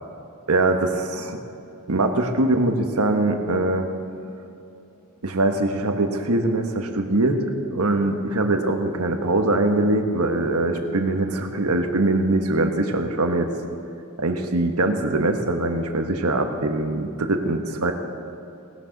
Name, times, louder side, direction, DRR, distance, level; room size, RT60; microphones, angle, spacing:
voice 1, 0.5-1.4 1.9-3.9 5.2-13.5 14.2-17.9, right 2 dB, 75° right, 5 dB, 1.3 m, -22 dB
18.5 x 12.5 x 4.1 m, 2.8 s
head